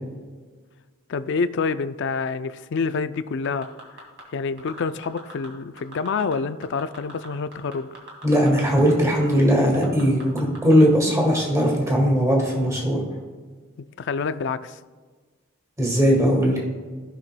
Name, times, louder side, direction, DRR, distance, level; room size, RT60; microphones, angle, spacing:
voice 1, 1.1-3.7 4.0-7.9 13.8-14.8, left 5 dB, 60° left, 13 dB, 0.4 m, -27 dB
sound 1, 3.4-4.2 4.6-5.5 5.8-6.3 6.6-8.9 9.2-9.3 9.6-10.7 11.2-11.3, right 1 dB, 60° right, 2.3 m, -41 dB
voice 2, 8.2-13.0 15.8-16.6, equal, 15° right, -1 dB, 1.9 m, -19 dB
16.0 x 5.8 x 2.2 m, 1.4 s
head